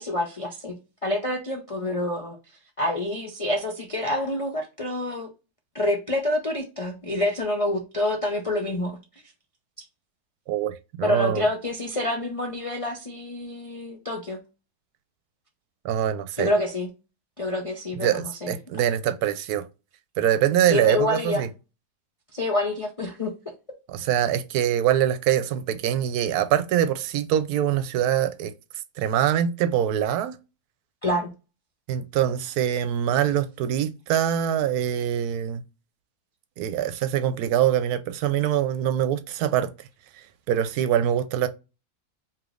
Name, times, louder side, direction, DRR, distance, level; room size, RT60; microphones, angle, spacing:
voice 1, 0.0-2.4 2.8-5.3 5.7-9.0 11.0-14.4 16.4-16.9 17.4-18.6 20.7-21.4 22.3-23.3 31.0-31.3, left 1 dB, 55° left, 0.3 m, -27 dB
voice 2, 10.5-11.4 15.8-16.5 18.0-19.7 20.2-21.5 23.9-28.5 29.0-30.4 31.9-35.6 36.6-39.7 40.5-41.5, right 10 dB, 80° right, 1.1 m, -24 dB
4.9 x 3.0 x 2.4 m
omnidirectional pair, 1.6 m